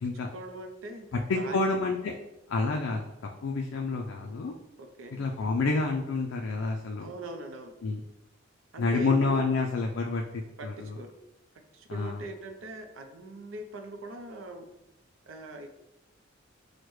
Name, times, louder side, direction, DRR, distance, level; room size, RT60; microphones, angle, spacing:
voice 1, 0.3-1.1 1.3-1.6 4.8-5.3 7.0-7.8 8.7-9.4 10.6-11.1 11.7-14.8 15.3-15.7, right 1 dB, 90° right, 5 dB, 0.6 m, -41 dB
voice 2, 1.3-2.1 2.5-4.5 5.1-7.1 7.8-8.0 8.8-11.0 11.9-12.2, left 3 dB, 80° left, 1 dB, 0.4 m, -29 dB
6.4 x 2.1 x 3.0 m, 0.91 s
head